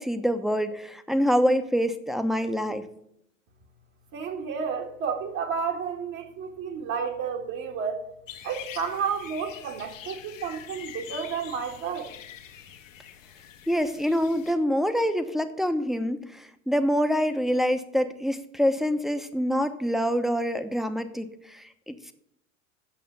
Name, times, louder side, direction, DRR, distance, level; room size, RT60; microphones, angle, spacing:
voice 1, 0.0-2.8 13.7-22.1, equal, ahead, 1.0 m, -26 dB
voice 2, 4.1-8.0 8.4-12.1, right 6 dB, 50° right, 1.8 m, -31 dB
sound 1, 8.3-14.5, left 10 dB, 75° left, 1.5 m, -44 dB
9.0 x 7.5 x 6.8 m
hypercardioid pair, 80°, 39 cm